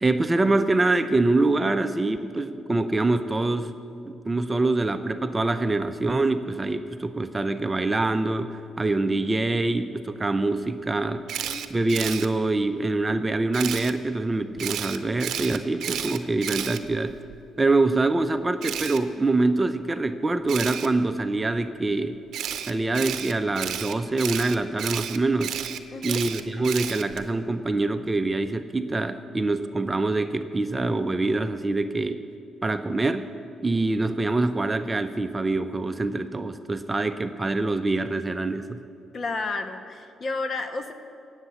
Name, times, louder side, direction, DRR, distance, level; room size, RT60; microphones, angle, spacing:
voice 1, 0.0-3.8 4.1-11.2 11.7-17.1 17.6-22.2 22.7-25.6 26.0-32.2 32.6-33.3 33.6-38.8, right 2 dB, 20° right, 9 dB, 0.6 m, -25 dB
Camera, 11.3-12.3 13.5-13.9 14.6-17.4 18.6-19.0 20.5-20.9 22.3-27.3, right 10 dB, 75° right, 0.7 m, -32 dB
voice 2, 11.4-11.7 25.9-26.2 39.1-40.9, left 3 dB, 45° left, 8 dB, 1.2 m, -31 dB
18.0 x 8.2 x 7.0 m, 2.6 s
cardioid pair, 90°, 0 cm